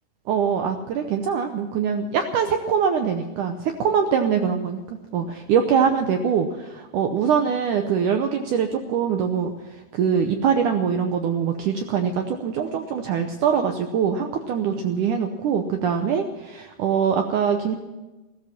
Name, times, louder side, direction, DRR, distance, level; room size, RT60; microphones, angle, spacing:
voice 1, 0.3-17.8, right 7 dB, 75° right, 5 dB, 1.8 m, -23 dB
16.0 x 14.0 x 5.9 m, 1.1 s
omnidirectional pair, 4.6 m